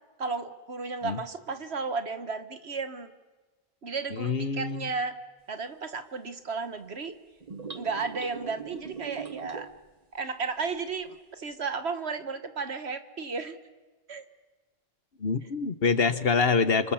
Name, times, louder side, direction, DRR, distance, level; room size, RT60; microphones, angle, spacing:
voice 1, 0.2-3.1 3.8-5.2 5.5-7.2 7.8-9.7 10.1-13.6 14.1-14.2, right 4 dB, 80° right, 10 dB, 1.8 m, -33 dB
voice 2, 4.1-4.8 15.2-16.9, left 5 dB, 65° left, 12 dB, 1.4 m, -25 dB
sound 1, 7.4-9.9, right 6 dB, 40° right, 1.2 m, -41 dB
29.5 x 26.5 x 7.2 m, 1.3 s
omnidirectional pair, 1.1 m